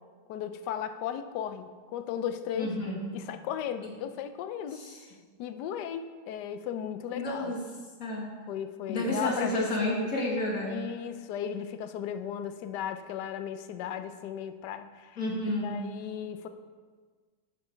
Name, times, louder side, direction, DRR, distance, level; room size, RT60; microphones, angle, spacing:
voice 1, 0.3-2.7 3.1-4.8 5.4-7.5 8.5-10.1 10.7-15.2 15.6-16.5, left 9 dB, 75° left, 9 dB, 1.2 m, -35 dB
voice 2, 2.6-3.0 3.8-3.9 4.7-5.0 7.1-7.6 8.0-8.3 8.9-10.9 15.2-15.8, left 1 dB, 55° left, -1 dB, 1.9 m, -31 dB
9.5 x 6.5 x 4.4 m, 1.5 s
omnidirectional pair, 1.9 m